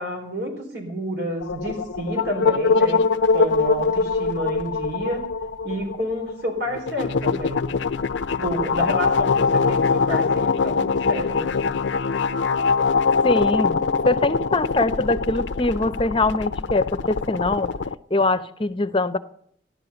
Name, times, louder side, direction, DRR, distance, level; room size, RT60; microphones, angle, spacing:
voice 1, 0.0-3.0 3.3-5.3 5.6-7.7 8.3-11.8, equal, 70° right, 2 dB, 4.2 m, -30 dB
sound 1, 1.4-17.9, left 4 dB, 80° left, 0.5 m, -23 dB
voice 2, 13.2-17.7 18.1-19.2, left 2 dB, 30° left, 10 dB, 0.7 m, -23 dB
14.5 x 11.5 x 6.9 m, 0.66 s
head